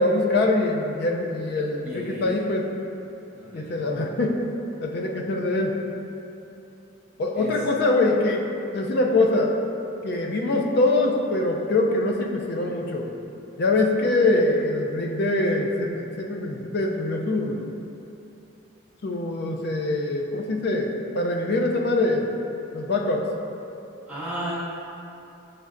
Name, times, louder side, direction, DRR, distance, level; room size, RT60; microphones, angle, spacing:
voice 1, 0.0-2.6 3.5-4.4 4.8-5.8 7.2-8.4 8.7-9.6 10.0-13.1 13.6-17.6 19.0-22.4 22.7-23.3, left 2 dB, 50° left, 1 dB, 0.4 m, -23 dB
voice 2, 1.8-2.3 3.3-3.8 7.3-7.5 24.1-24.5, equal, 5° right, -10 dB, 0.8 m, -34 dB
6.3 x 3.2 x 2.4 m, 2.8 s
head